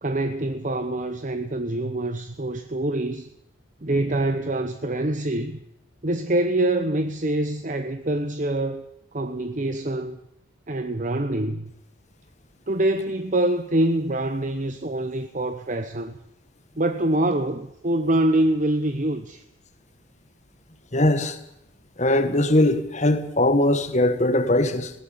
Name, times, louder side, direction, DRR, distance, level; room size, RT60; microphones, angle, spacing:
voice 1, 0.0-3.3 3.8-5.6 6.0-8.8 9.1-10.2 10.7-11.7 12.7-16.1 16.8-19.4, right 1 dB, 35° right, 1.0 m, -25 dB
voice 2, 20.9-21.4 22.0-24.9, left 1 dB, 35° left, 1.7 m, -20 dB
20.0 x 17.5 x 8.7 m
head